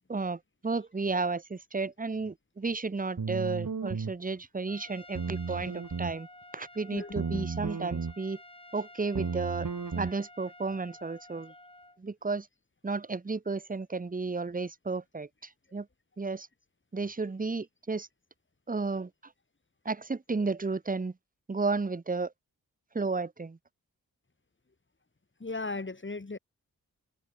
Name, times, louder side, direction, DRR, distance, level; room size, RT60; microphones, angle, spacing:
voice 1, 0.1-6.3 6.5-8.4 8.7-9.7 9.9-11.5 12.0-12.5 12.8-15.9 16.2-16.5 16.9-18.1 18.7-19.1 19.8-21.1 21.5-22.3 22.9-23.6, right 4 dB, 25° right, 0.8 m, -33 dB
sound 1, 3.2-4.1 5.1-6.2 7.2-8.1 9.1-10.1, right 5 dB, 60° right, 2.5 m, -33 dB
Trumpet, 4.7-12.0, left 1 dB, 15° left, 5.4 m, -52 dB
voice 2, 6.9-7.4 25.4-26.4, left 3 dB, 35° left, 2.7 m, -37 dB
wide cardioid pair, 85°, 36 cm